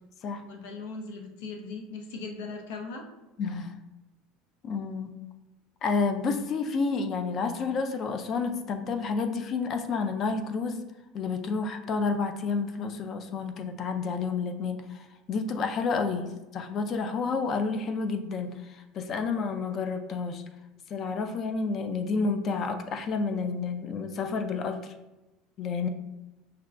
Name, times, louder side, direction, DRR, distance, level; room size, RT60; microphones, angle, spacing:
voice 1, 0.5-3.0 16.3-16.4, left 4 dB, 90° left, 2 dB, 0.7 m, -39 dB
voice 2, 3.4-3.8 4.6-5.2 5.8-10.8 11.1-20.4 20.9-24.9 25.6-25.9, left 4 dB, 40° left, 7 dB, 0.4 m, -30 dB
5.8 x 2.2 x 2.4 m, 1.0 s
cardioid pair, 140°, 0 cm